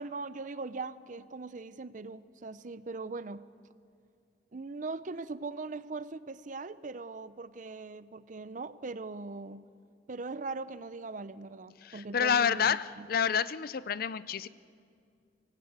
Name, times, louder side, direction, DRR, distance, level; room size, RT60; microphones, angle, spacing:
voice 1, 0.0-3.5 4.5-9.7 10.1-13.1, right 3 dB, 45° right, 15 dB, 0.6 m, -40 dB
voice 2, 11.8-14.5, left 7 dB, 55° left, 17 dB, 0.5 m, -29 dB
24.5 x 17.5 x 8.2 m, 2.3 s
head